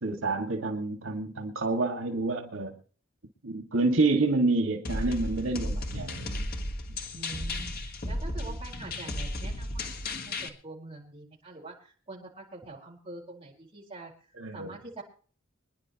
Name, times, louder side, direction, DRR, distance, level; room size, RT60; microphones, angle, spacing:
voice 1, 0.0-2.7 3.4-6.4 14.4-14.8, right 3 dB, 80° right, 3 dB, 2.1 m, -28 dB
sound 1, 4.8-10.5, left 1 dB, 45° left, 1.4 m, -34 dB
voice 2, 7.1-14.1 14.5-15.0, right 2 dB, 25° right, -2 dB, 4.7 m, -45 dB
25.0 x 10.5 x 3.0 m, 0.40 s
head